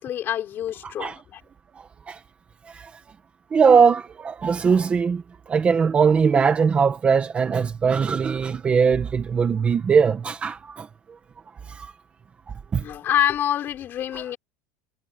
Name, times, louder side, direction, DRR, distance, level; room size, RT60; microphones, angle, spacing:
voice 1, 0.0-1.4 12.8-14.4, left 11 dB, 30° left, 5.0 m, -26 dB
voice 2, 0.8-1.2 2.1-2.2 2.7-2.9 3.5-10.9 11.7-11.9 12.7-12.8 14.1-14.2, right 6 dB, 15° right, 1.4 m, -20 dB
cardioid pair, 180°, 7 cm